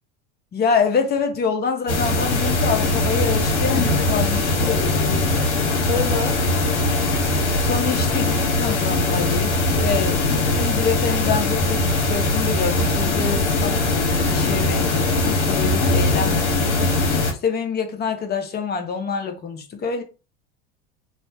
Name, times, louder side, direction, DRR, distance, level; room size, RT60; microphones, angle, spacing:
voice 1, 0.5-5.0 7.6-13.8 14.3-16.4 17.4-20.0, left 6 dB, 30° left, 0.8 m, -26 dB
sound 1, 1.9-17.3, left 2 dB, 85° left, 0.8 m, -21 dB
voice 2, 4.6-6.4, left 5 dB, 70° left, 1.3 m, -30 dB
2.7 x 2.0 x 3.3 m
hypercardioid pair, 80°, 34 cm